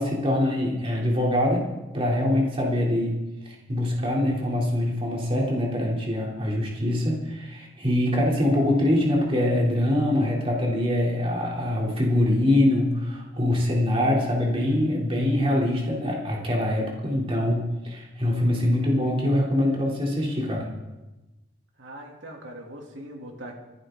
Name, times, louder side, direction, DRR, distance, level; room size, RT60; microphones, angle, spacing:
voice 1, 0.0-1.7 1.9-3.2 3.7-20.7, left 1 dB, 30° right, -2 dB, 3.5 m, -24 dB
voice 2, 21.8-23.6, right 1 dB, 75° right, 0 dB, 3.0 m, -41 dB
25.5 x 11.0 x 3.9 m, 1.1 s
head